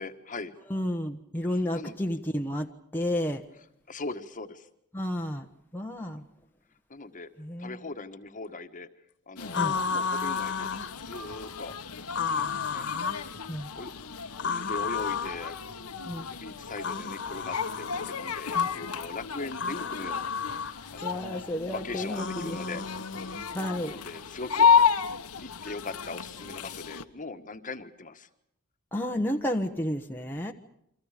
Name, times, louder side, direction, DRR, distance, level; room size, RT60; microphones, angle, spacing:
voice 1, 0.0-0.5 1.5-2.0 3.9-4.7 6.9-7.3 7.6-8.9 9.3-10.7 11.0-11.7 12.3-12.9 13.7-13.9 14.4-15.6 16.3-20.3 20.9-21.2 21.7-22.8 23.8-24.7 25.4-28.3, left 3 dB, 35° left, 8 dB, 1.6 m, -40 dB
voice 2, 0.7-3.4 4.9-5.5 5.7-6.2 7.4-7.8 9.6-9.7 13.5-13.7 16.0-16.3 18.5-18.7 21.0-22.6 23.5-23.9 28.9-30.5, left 1 dB, 10° left, 1 dB, 1.2 m, -31 dB
sound 1, 9.4-27.0, left 6 dB, 85° left, 1.4 m, -31 dB
sound 2, 9.5-10.9 12.1-13.3 14.4-15.4 16.8-18.2 19.5-20.7 22.1-23.4, left 5 dB, 55° left, 1.7 m, -32 dB
29.5 x 25.0 x 5.1 m, 0.73 s
head